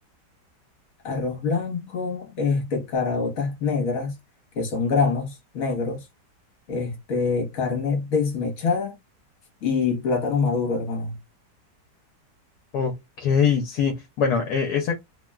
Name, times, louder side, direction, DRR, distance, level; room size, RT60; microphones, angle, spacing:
voice 1, 1.0-4.2 4.5-6.1 6.7-9.0 9.6-11.2, left 4 dB, 55° left, 1.3 m, -25 dB
voice 2, 12.7-15.0, left 6 dB, 75° left, 1.2 m, -23 dB
3.2 x 2.2 x 2.3 m
omnidirectional pair, 1.8 m